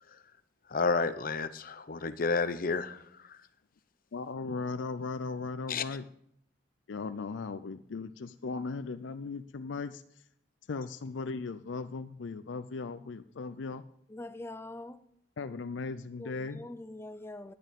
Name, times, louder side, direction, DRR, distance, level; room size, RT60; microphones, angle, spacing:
voice 1, 0.7-3.4 5.7-5.8, left 4 dB, 50° left, 0.7 m, -31 dB
voice 2, 4.1-6.0 6.9-10.0 10.7-13.8 15.4-16.7, left 4 dB, 85° left, 0.5 m, -37 dB
voice 3, 14.1-15.0 16.2-17.5, left 2 dB, 15° left, 0.5 m, -43 dB
11.0 x 9.1 x 5.1 m
head